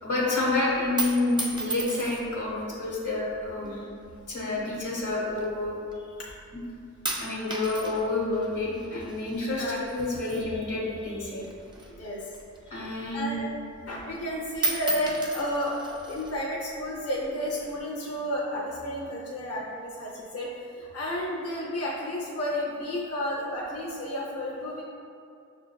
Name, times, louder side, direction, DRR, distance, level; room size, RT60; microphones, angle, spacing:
voice 1, 0.0-3.8 4.3-5.8 6.1-6.2 6.5-6.6 7.2-11.4 12.7-13.4, left 2 dB, 90° left, -5 dB, 1.0 m, -29 dB
sound 1, 0.8-2.5 3.3-3.7 4.6-5.9 6.3-6.7 7.1-11.1 11.4-13.1 13.5-13.6 13.9-14.3 14.5-16.4 17.1-17.8, right 2 dB, 15° right, 0.4 m, -35 dB
voice 2, 9.5-9.8 12.0-12.3 13.1-13.5 13.8-24.8, equal, 55° left, -5 dB, 0.6 m, -32 dB
6.3 x 2.5 x 2.2 m, 2.5 s
wide cardioid pair, 120°, 29 cm